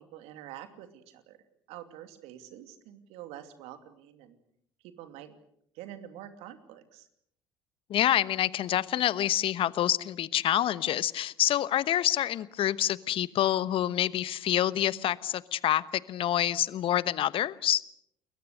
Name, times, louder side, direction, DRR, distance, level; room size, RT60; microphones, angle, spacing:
voice 1, 0.0-1.4 1.7-4.4 4.8-5.4 5.7-7.1, right 11 dB, 65° right, 8 dB, 2.8 m, -46 dB
voice 2, 7.9-17.8, left 12 dB, 55° left, 17 dB, 1.1 m, -27 dB
30.0 x 22.0 x 6.6 m, 0.69 s
hypercardioid pair, 55°, 11 cm